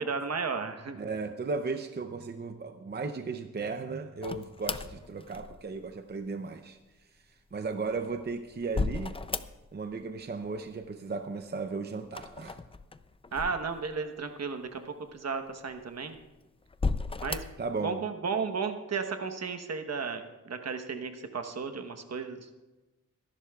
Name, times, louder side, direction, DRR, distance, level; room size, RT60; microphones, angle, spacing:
voice 1, 0.0-1.0 13.3-16.2 17.2-17.4 17.8-22.5, right 5 dB, 55° right, 6 dB, 1.1 m, -34 dB
voice 2, 1.0-9.1 9.7-12.6 17.6-18.0, right 4 dB, 35° right, 6 dB, 0.6 m, -36 dB
sound 1, 4.2-5.9 7.7-9.9 10.2-10.9 12.0-14.2 14.8-14.9 15.7-16.2 16.7-17.7, left 3 dB, 20° left, 0.4 m, -35 dB
23.5 x 11.5 x 2.4 m, 1.1 s
wide cardioid pair, 120°, 31 cm